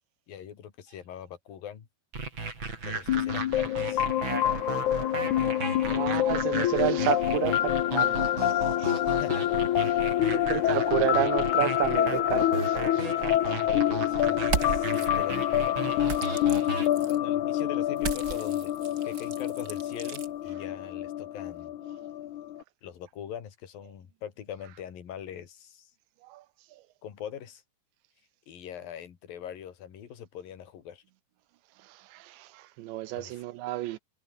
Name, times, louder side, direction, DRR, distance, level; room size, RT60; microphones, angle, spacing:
voice 1, 0.3-1.9 2.9-4.1 5.8-6.4 9.1-9.5 10.2-10.5 10.7-10.8 13.4-15.4 15.6-16.1 17.1-18.7 19.0-21.7 22.8-25.9 27.0-27.6 28.5-31.0 33.1-33.3, left 9 dB, 55° left, 4.2 m, -42 dB
sound 1, 2.1-16.9, right 3 dB, 25° right, 4.8 m, -35 dB
sound 2, 3.1-22.6, left 12 dB, 80° left, 1.7 m, -27 dB
voice 2, 5.9-8.5 8.8-9.0 9.9-10.0 10.3-13.1 26.2-26.4 31.8-34.0, right 16 dB, 80° right, 3.1 m, -31 dB
sound 3, 14.4-15.1 16.1-17.2 18.0-20.3, right 5 dB, 40° right, 1.3 m, -35 dB
omnidirectional pair, 5.4 m